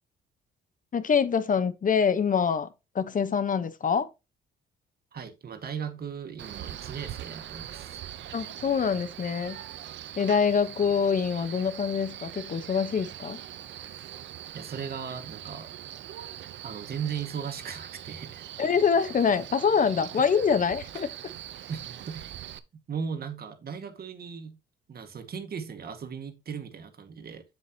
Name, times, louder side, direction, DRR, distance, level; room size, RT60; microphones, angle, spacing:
voice 1, 0.9-2.7 2.9-4.1 8.3-9.6 10.2-13.4 18.6-21.1, left 6 dB, 40° left, 1.1 m, -25 dB
voice 2, 5.1-8.0 14.5-15.7 16.6-18.4 21.7-22.3 22.9-24.6 24.9-27.4, right 7 dB, 50° right, 2.0 m, -37 dB
Male speech man speaking, 6.4-22.6, right 11 dB, 70° right, 0.8 m, -42 dB
7.9 x 7.8 x 3.0 m
cardioid pair, 90°, 20 cm